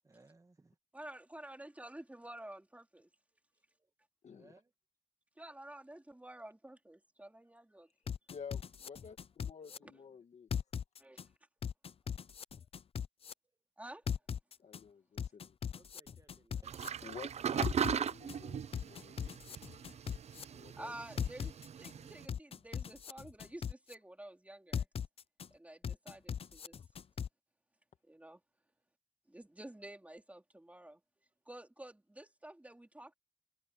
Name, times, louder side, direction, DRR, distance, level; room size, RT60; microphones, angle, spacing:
voice 1, 0.0-0.8 3.8-3.9 4.3-4.7 9.6-10.2 15.7-17.1, right 3 dB, 30° right, 2.0 m, -65 dB
voice 2, 0.9-3.1 5.4-7.9 9.8-9.9 11.0-11.2 13.8-14.0 20.8-24.9 25.5-26.8 28.0-28.4 29.3-31.0 31.4-33.1, right 1 dB, 10° right, 3.2 m, -50 dB
voice 3, 4.2-4.5 8.3-10.5 14.6-15.6 17.0-19.9 20.5-20.9, left 6 dB, 80° left, 1.8 m, -52 dB
sound 1, 8.1-9.8 10.5-11.2 11.6-13.3 14.1-14.8 15.2-16.9 17.6-18.4 18.7-20.4 21.2-21.9 22.3-23.9 24.7-25.5 25.8-27.3, left 7 dB, 55° left, 0.5 m, -39 dB
sound 2, 16.6-22.3, right 7 dB, 70° right, 0.5 m, -38 dB
wide cardioid pair, 110°, 12 cm